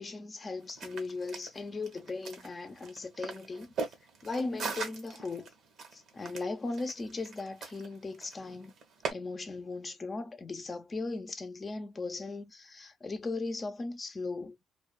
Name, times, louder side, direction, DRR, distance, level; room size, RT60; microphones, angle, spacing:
voice 1, 0.0-3.7 4.2-5.5 5.9-8.7 9.1-14.6, left 3 dB, 30° left, 0.7 m, -38 dB
sound 1, 0.6-9.1, right 4 dB, 70° right, 1.0 m, -41 dB
2.4 x 2.3 x 2.3 m
cardioid pair, 90°, 0 cm